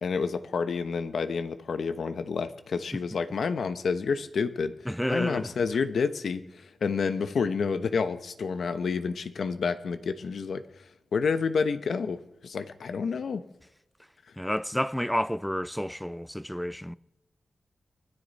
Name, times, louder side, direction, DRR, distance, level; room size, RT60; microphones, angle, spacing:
voice 1, 0.0-10.9 11.1-13.4, left 5 dB, 80° left, 0.9 m, -29 dB
voice 2, 4.9-5.5 14.4-17.0, equal, 5° left, 0.5 m, -30 dB
23.5 x 13.5 x 4.1 m
cardioid pair, 70°, 0 cm